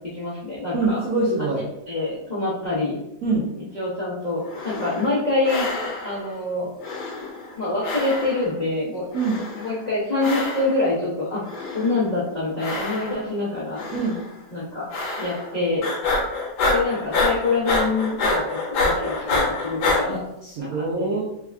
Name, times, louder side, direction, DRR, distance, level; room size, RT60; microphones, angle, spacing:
voice 1, 0.1-1.0 1.9-3.0 3.7-5.7 6.0-6.7 7.6-9.1 9.5-11.4 11.7-13.9 14.5-14.9 15.2-15.9 16.7-18.4 18.8-20.2 20.6-21.2, left 2 dB, 85° left, -9 dB, 0.4 m, -25 dB
voice 2, 0.7-1.6 3.2-3.5 9.1-9.4 13.9-14.2 20.1-21.2, right 3 dB, 80° right, -4 dB, 0.7 m, -24 dB
sound 1, 4.4-5.2 5.4-6.3 6.8-7.6 7.8-8.6 9.1-9.8 10.2-10.9 11.4-12.1 12.6-13.4 13.8-14.2 14.9-15.5 15.8-20.0, left 3 dB, 60° left, 1.3 m, -26 dB
3.4 x 2.4 x 3.3 m, 0.84 s
omnidirectional pair, 2.2 m